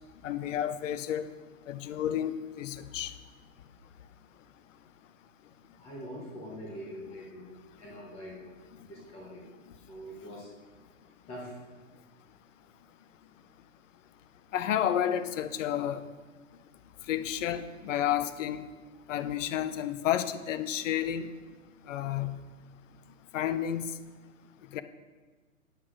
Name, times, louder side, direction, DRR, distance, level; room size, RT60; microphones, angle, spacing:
voice 1, 0.2-1.3 1.7-3.1 14.5-16.1 17.1-18.6 19.1-21.3 21.9-22.4 23.3-23.9 24.7-24.8, left 10 dB, 60° left, 11 dB, 0.5 m, -31 dB
voice 2, 5.8-7.5 7.8-8.4 8.8-9.4 9.8-10.5 11.3-11.6, equal, 15° left, -4 dB, 0.8 m, -43 dB
9.3 x 8.0 x 2.5 m, 1.4 s
hypercardioid pair, 150°, 42 cm